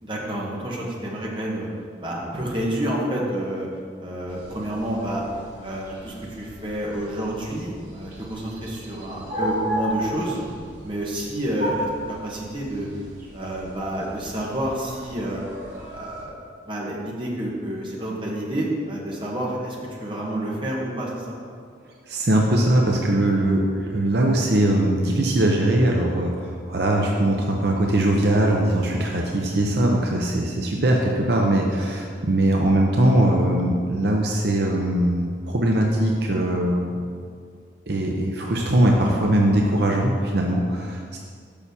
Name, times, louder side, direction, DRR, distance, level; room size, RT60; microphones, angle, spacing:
voice 1, 0.0-1.7 2.0-3.7 4.0-5.2 5.6-10.4 10.8-12.9 13.3-15.4 15.9-16.3 16.6-21.4, right 1 dB, 25° right, -4 dB, 1.5 m, -29 dB
sound 1, 4.3-16.2, equal, 45° right, 2.2 m, -35 dB
voice 2, 22.1-37.0 37.9-41.2, right 1 dB, 65° right, -1 dB, 0.8 m, -21 dB
7.0 x 5.8 x 6.9 m, 2.1 s
head